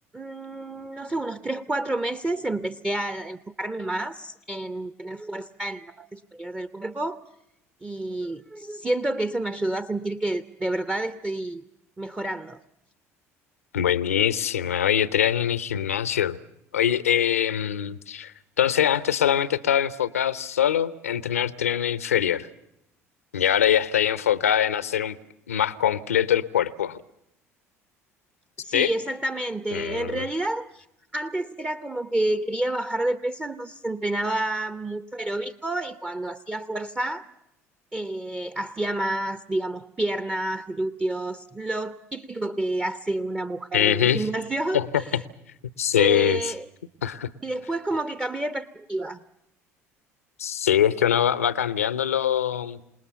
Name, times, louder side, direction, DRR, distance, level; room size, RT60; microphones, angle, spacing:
voice 1, 0.1-7.2 7.8-11.6 12.0-12.6 28.6-30.8 31.1-37.2 37.9-45.2 46.0-46.6 47.4-49.2, right 1 dB, 15° right, 12 dB, 0.9 m, -29 dB
voice 2, 13.7-16.4 16.7-22.5 23.3-25.2 25.5-27.0 28.7-28.9 29.7-30.3 43.7-44.3 44.7-44.9 45.1-45.2 45.8-46.5 47.0-47.3 50.4-52.8, left 9 dB, 75° left, 19 dB, 0.8 m, -23 dB
27.5 x 20.0 x 6.8 m, 0.81 s
figure-of-eight pair, 60°, 8 cm